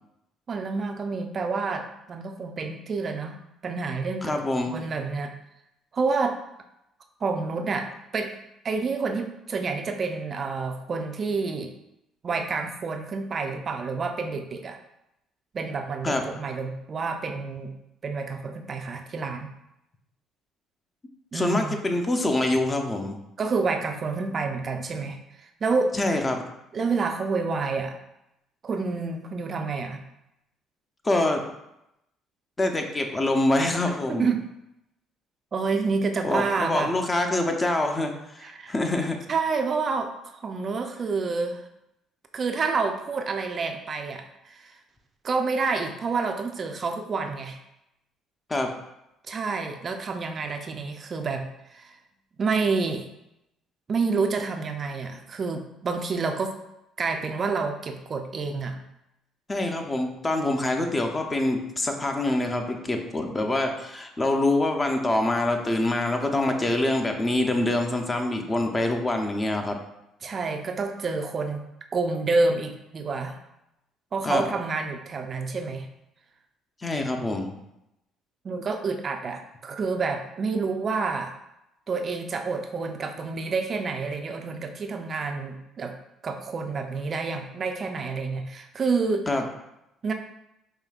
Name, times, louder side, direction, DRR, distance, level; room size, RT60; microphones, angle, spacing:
voice 1, 0.5-4.4 4.7-5.3 5.9-6.4 7.2-8.4 8.6-11.7 12.2-14.8 15.5-17.7 18.0-19.5 21.3-21.8 23.4-25.9 26.7-28.0 28.6-30.0 34.1-34.4 35.5-36.9 38.4-38.7 39.3-41.6 42.3-44.8 45.2-47.6 49.3-52.0 52.4-53.1 53.9-56.6 57.0-58.8 70.2-71.6 71.9-73.4 74.1-75.9 78.4-81.3 81.9-86.0 86.2-89.4 90.0-90.1, right 4 dB, 40° right, 5 dB, 0.4 m, -28 dB
voice 2, 4.2-4.8 16.0-16.2 21.3-23.2 25.9-26.4 31.0-31.4 32.6-34.3 36.2-39.2 48.5-48.7 59.5-69.8 74.2-74.4 76.8-77.5 89.3-89.4, left 2 dB, 25° left, 4 dB, 0.5 m, -25 dB
4.9 x 2.7 x 2.3 m, 0.85 s
cardioid pair, 90°, 0 cm